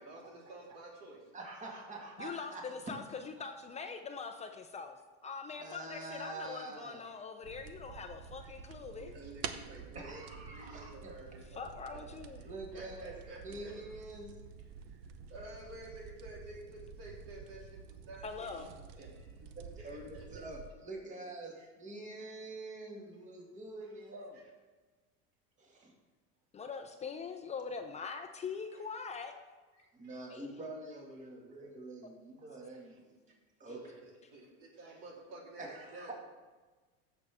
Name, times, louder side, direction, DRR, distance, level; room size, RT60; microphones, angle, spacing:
voice 1, 0.0-1.2 8.4-8.5 9.0-10.0 10.3-12.0 12.4-13.8 14.9-18.7 19.0-19.3 19.8-20.4 21.6-21.7 24.3-24.4 29.8-30.2 32.7-32.8 33.7-36.1, right 1 dB, 75° right, -3 dB, 3.7 m, -51 dB
voice 2, 1.3-2.6 5.6-7.0 8.8-8.9 9.9-11.2 12.4-13.1 13.4-14.3 19.6-24.4 25.6-25.9 29.9-33.2 33.6-34.1 35.6-36.1, right 2 dB, 25° right, 0 dB, 2.1 m, -46 dB
voice 3, 2.2-5.0 5.2-9.1 11.5-12.4 18.2-18.7 26.5-29.3 30.3-30.5, left 5 dB, 20° left, 6 dB, 0.6 m, -43 dB
sound 1, 7.4-20.7, right 7 dB, 55° right, 0.8 m, -49 dB
15.5 x 6.9 x 3.6 m, 1.3 s
supercardioid pair, 135°, 31 cm